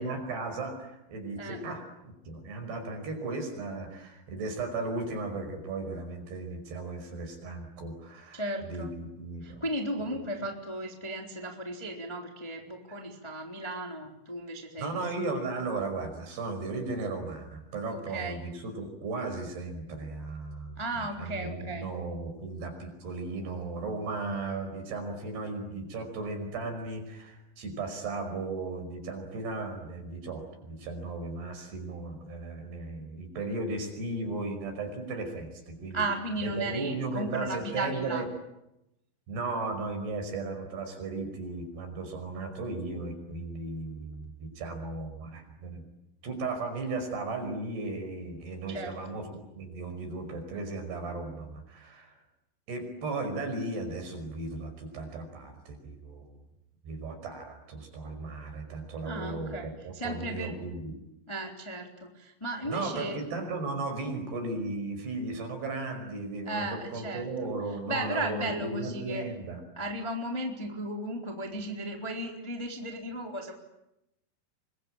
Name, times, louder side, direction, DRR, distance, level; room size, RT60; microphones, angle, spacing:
voice 1, 0.0-9.6 10.0-10.2 14.8-36.0 36.4-38.3 39.3-45.8 46.2-52.2 52.7-56.3 56.8-61.0 62.7-69.6, right 3 dB, 55° right, 6 dB, 7.2 m, -36 dB
voice 2, 1.4-1.8 8.3-8.9 9.4-15.0 17.9-18.4 20.8-21.9 35.9-38.2 48.7-48.9 59.0-60.5 61.3-63.2 66.4-67.2 67.9-69.2 69.7-73.5, right 1 dB, 5° left, 2 dB, 2.7 m, -35 dB
27.5 x 23.5 x 9.0 m, 0.87 s
omnidirectional pair, 6.0 m